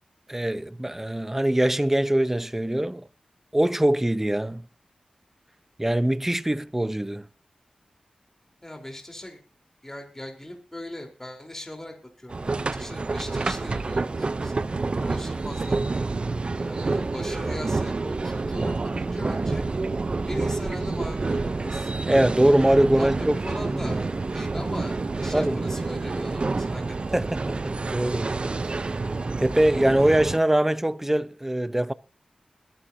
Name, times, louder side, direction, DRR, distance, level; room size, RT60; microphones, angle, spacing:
voice 1, 0.3-3.1 3.5-4.6 5.8-7.3 22.0-23.3 23.8-23.9 25.3-25.6 27.1-28.9 29.4-31.9, right 1 dB, 15° right, 0.9 m, -23 dB
voice 2, 8.6-9.4 9.8-15.8 16.6-19.6 20.2-21.9 23.0-27.2, left 1 dB, 20° left, 4.2 m, -39 dB
sound 1, 12.3-30.4, right 3 dB, 45° right, 0.8 m, -28 dB
22.0 x 11.5 x 2.8 m
cardioid pair, 55°, 2 cm